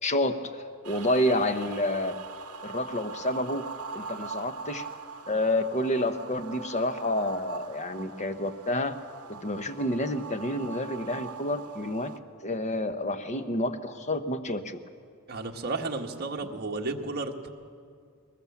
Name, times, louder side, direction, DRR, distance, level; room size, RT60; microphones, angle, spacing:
voice 1, 0.0-2.2 2.6-3.7 3.9-4.9 5.3-9.0 9.3-12.1 12.4-14.8, left 1 dB, 30° left, 9 dB, 1.0 m, -29 dB
sound 1, 0.8-12.2, right 5 dB, 75° right, 0.9 m, -42 dB
voice 2, 15.3-17.5, right 3 dB, 45° right, 2 dB, 1.6 m, -33 dB
21.0 x 20.5 x 7.2 m, 2.1 s
head